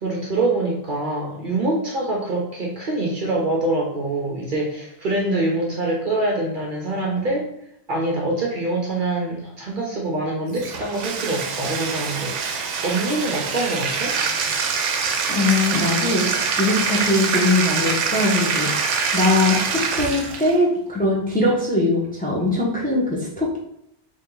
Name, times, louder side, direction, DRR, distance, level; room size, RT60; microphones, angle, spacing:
voice 1, 0.0-7.5 7.9-14.2, right 2 dB, 50° right, -2 dB, 0.8 m, -25 dB
Bathtub (filling or washing), 10.5-20.6, right 5 dB, 90° right, 0.9 m, -24 dB
voice 2, 15.3-16.3 16.6-18.7 19.1-23.6, left 2 dB, 10° left, -5 dB, 0.7 m, -21 dB
3.2 x 2.8 x 3.8 m, 0.77 s
omnidirectional pair, 1.2 m